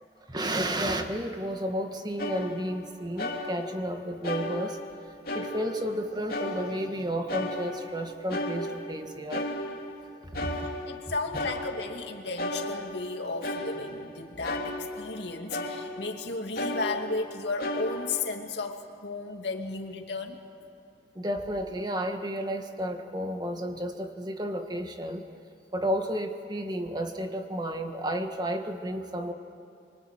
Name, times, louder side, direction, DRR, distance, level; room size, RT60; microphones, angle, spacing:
voice 1, 0.3-4.8 5.3-9.5 10.2-10.6 21.1-25.3 25.7-29.3, equal, 25° right, 5 dB, 1.6 m, -32 dB
sound 1, 2.2-2.9 3.2-3.9 4.2-6.0 6.3-7.0 7.3-10.0 10.3-12.1 12.4-15.2 15.5-16.2 16.6-18.2, left 1 dB, 55° left, 2.8 m, -35 dB
voice 2, 10.9-20.4, left 3 dB, 75° left, 3 dB, 2.4 m, -34 dB
25.5 x 25.0 x 9.1 m, 2.6 s
head